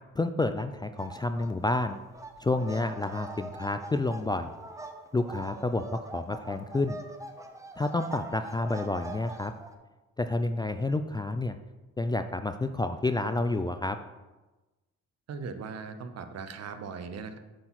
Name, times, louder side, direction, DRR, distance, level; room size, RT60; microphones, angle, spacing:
voice 1, 0.2-2.0 2.4-4.5 5.1-5.8 6.1-7.0 7.8-9.5 10.2-11.6 12.0-14.0, left 2 dB, 15° left, 8 dB, 0.3 m, -29 dB
sound 1, 1.0-1.5 1.8-9.7, right 2 dB, 10° right, 0.8 m, -43 dB
voice 2, 15.3-17.4, right 5 dB, 55° right, 9 dB, 0.9 m, -39 dB
7.6 x 4.5 x 5.8 m, 1.1 s
cardioid pair, 90°, 30 cm